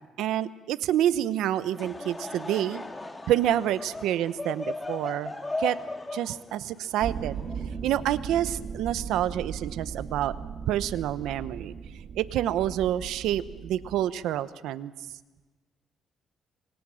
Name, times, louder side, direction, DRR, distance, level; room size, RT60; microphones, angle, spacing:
voice 1, 0.0-2.8 3.3-5.3 5.6-5.8 6.1-7.3 7.8-10.3 10.7-11.7 12.2-14.9, right 12 dB, 85° right, 14 dB, 0.9 m, -28 dB
Laughter / Crowd, 1.6-8.0, left 2 dB, 20° left, 2.1 m, -37 dB
sound 1, 7.0-14.1, right 6 dB, 55° right, 1.8 m, -38 dB
26.0 x 26.0 x 6.4 m, 1.3 s
cardioid pair, 90°, 0 cm